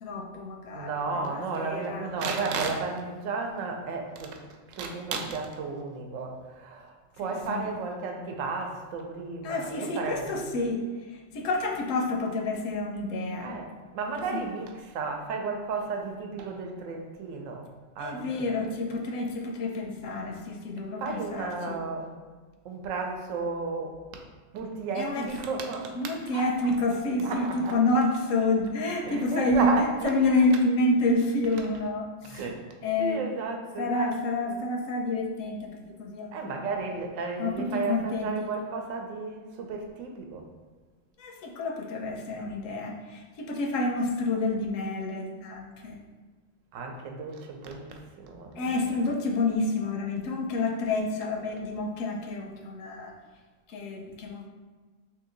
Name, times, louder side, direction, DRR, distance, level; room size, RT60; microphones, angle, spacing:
voice 1, 0.0-0.9 1.3-2.1 7.3-7.7 9.4-10.8 11.3-13.6 14.3-14.4 18.0-21.8 25.0-25.2 26.0-29.7 30.0-32.4 32.8-33.2 33.8-36.7 37.4-38.3 41.2-46.0 48.6-53.1 53.7-54.5, left 2 dB, 80° left, 2 dB, 1.0 m, -28 dB
voice 2, 0.7-4.4 4.7-10.5 13.4-18.6 21.0-22.2 22.6-24.0 24.5-26.0 26.2-26.7 27.2-27.8 29.0-30.2 32.3-32.6 33.0-34.1 34.5-34.7 36.3-40.5 46.7-49.0, right 4 dB, 85° right, 2 dB, 1.0 m, -33 dB
2.9 x 2.7 x 3.8 m, 1.4 s
omnidirectional pair, 1.3 m